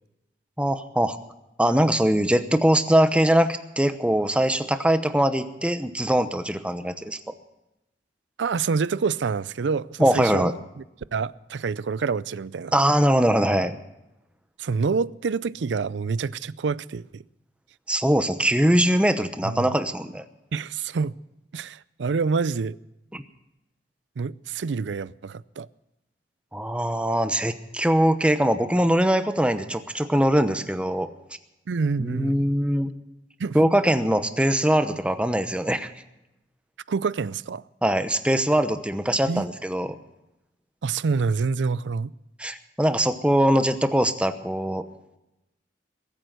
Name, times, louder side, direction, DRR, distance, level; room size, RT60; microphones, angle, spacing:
voice 1, 0.6-1.2 1.6-7.3 10.0-10.5 12.7-13.8 17.9-20.3 23.1-23.2 26.5-31.1 32.0-32.9 33.5-35.9 37.8-40.0 42.4-44.8, right 1 dB, 5° right, 0.9 m, -22 dB
voice 2, 8.4-10.8 11.1-12.7 14.6-17.2 19.4-19.7 20.5-21.2 21.5-22.8 24.2-25.7 31.7-32.4 33.4-33.6 36.9-37.6 39.3-39.4 40.8-42.1, right 5 dB, 85° right, 0.5 m, -27 dB
21.5 x 9.1 x 6.6 m
head